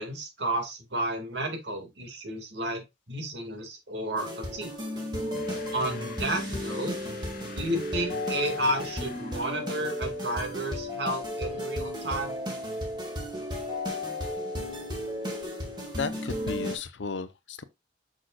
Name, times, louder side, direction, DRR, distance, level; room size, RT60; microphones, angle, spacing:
voice 1, 0.0-4.7 5.7-7.0 7.5-12.4, right 1 dB, 70° right, 2.1 m, -32 dB
sound 1, 4.2-16.8, left 1 dB, 25° right, 2.0 m, -34 dB
sound 2, 5.3-10.0, left 6 dB, 50° left, 0.9 m, -48 dB
voice 2, 16.0-17.6, left 4 dB, 90° left, 0.7 m, -34 dB
6.3 x 6.3 x 2.4 m
head